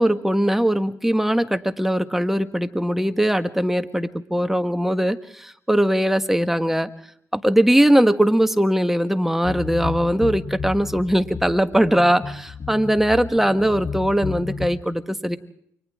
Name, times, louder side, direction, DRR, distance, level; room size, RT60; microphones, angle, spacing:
voice 1, 0.0-6.9 7.3-15.4, equal, 5° right, 9 dB, 1.5 m, -20 dB
sound 1, 9.4-14.7, left 5 dB, 45° left, 3.7 m, -32 dB
29.5 x 25.0 x 3.6 m, 0.70 s
cardioid pair, 70°, 6 cm